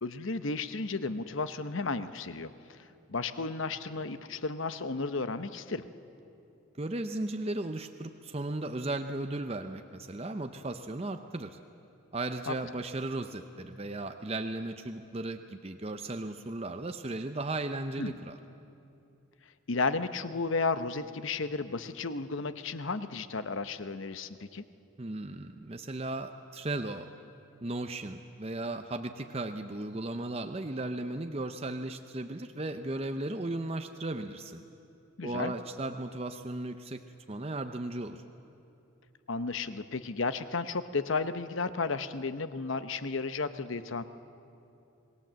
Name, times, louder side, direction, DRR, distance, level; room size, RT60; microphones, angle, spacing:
voice 1, 0.0-2.8 3.1-5.8 12.5-12.6 18.0-18.2 19.7-24.6 35.2-35.5 39.3-44.0, left 4 dB, 70° left, 12 dB, 0.9 m, -33 dB
voice 2, 6.8-11.6 12.1-18.4 25.0-27.1 27.6-34.6 35.2-37.0 37.3-38.2, right 2 dB, 30° right, 7 dB, 0.6 m, -36 dB
27.0 x 19.5 x 7.5 m, 2.7 s
head